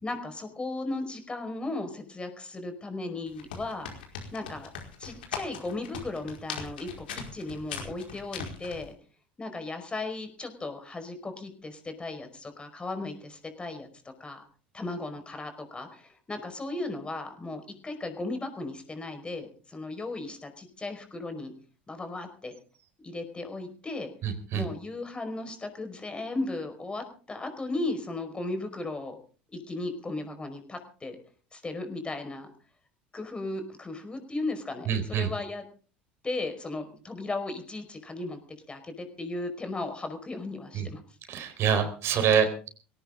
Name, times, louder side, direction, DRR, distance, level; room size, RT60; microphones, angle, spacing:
voice 1, 0.0-3.9 4.3-4.7 5.0-8.9 9.4-13.9 14.2-14.4 14.7-21.5 21.9-22.5 23.0-24.1 24.5-29.1 29.5-31.2 31.5-32.5 33.1-35.6 36.2-38.4 38.7-41.0, left 2 dB, 20° left, 7 dB, 5.1 m, -36 dB
sound 1, 3.3-8.9, left 7 dB, 75° left, 5.0 m, -39 dB
voice 2, 24.2-24.6 34.9-35.3 40.7-40.9 41.3-42.7, right 7 dB, 50° right, 8 dB, 4.3 m, -26 dB
20.5 x 18.0 x 3.8 m, 0.40 s
hypercardioid pair, 75°, 5 cm